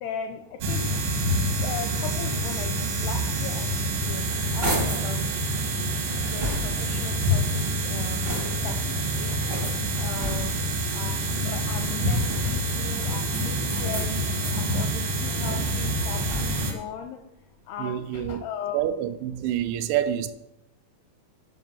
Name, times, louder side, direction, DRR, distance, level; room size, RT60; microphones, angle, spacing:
voice 1, 0.0-0.8 1.6-4.2 4.5-5.2 6.1-8.8 9.2-9.4 10.0-10.6 10.9-11.1 11.5-17.2 17.7-18.8, left 7 dB, 85° left, 6 dB, 2.4 m, -37 dB
sound 1, 0.6-16.7, right 1 dB, 65° right, 1.6 m, -27 dB
sound 2, 4.1-5.1 5.7-7.0 7.6-8.8 9.4-10.7 11.6-12.6 13.3-14.7 15.1-16.8, equal, 50° right, 0.5 m, -35 dB
voice 2, 17.8-18.4 18.7-20.3, right 11 dB, 85° right, 11 dB, 2.9 m, -27 dB
12.0 x 5.2 x 5.5 m, 0.87 s
omnidirectional pair, 5.2 m